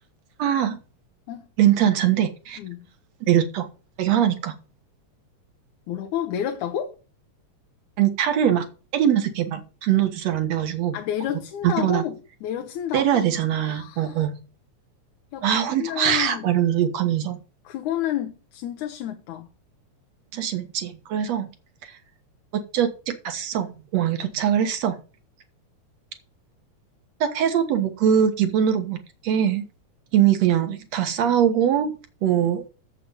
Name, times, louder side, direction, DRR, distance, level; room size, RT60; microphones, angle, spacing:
voice 1, 0.4-0.8 1.6-2.6 3.3-3.7 4.0-4.5 8.0-8.7 8.9-11.0 11.6-12.0 12.9-14.3 15.4-17.4 20.3-21.5 22.5-25.0 27.2-29.0 29.2-29.7 30.1-31.9 32.2-32.6, right 9 dB, 65° right, 2.4 m, -22 dB
voice 2, 5.9-6.9 10.9-13.2 13.6-14.2 15.3-16.5 17.7-19.5, left 10 dB, 85° left, 2.4 m, -30 dB
7.9 x 7.6 x 5.6 m
omnidirectional pair, 3.4 m